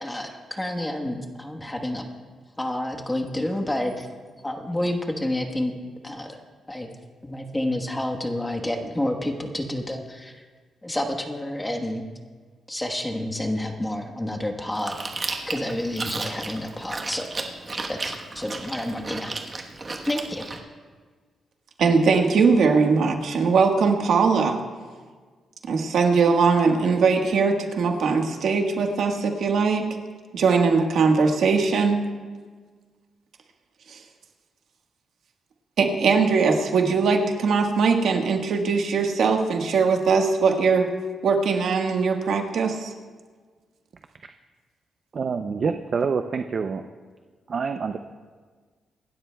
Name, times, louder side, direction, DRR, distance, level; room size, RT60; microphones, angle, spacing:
voice 1, 0.0-2.1 2.6-4.1 4.4-5.8 6.0-6.4 6.7-6.9 7.2-10.4 10.8-12.1 12.7-15.0 15.5-17.3 17.9-19.3 20.0-20.4, left 1 dB, 10° left, 3 dB, 1.2 m, -29 dB
Chewing mastication, 14.7-20.6, right 3 dB, 25° right, 1.1 m, -34 dB
voice 2, 21.8-24.6 25.7-29.9 30.3-32.0 33.9-34.0 35.8-40.9 41.2-42.9, right 4 dB, 70° right, 3 dB, 1.4 m, -20 dB
voice 3, 45.1-46.8 47.5-48.0, right 5 dB, 45° right, 7 dB, 0.5 m, -26 dB
26.0 x 12.5 x 2.3 m, 1.5 s
cardioid pair, 135°, 0 cm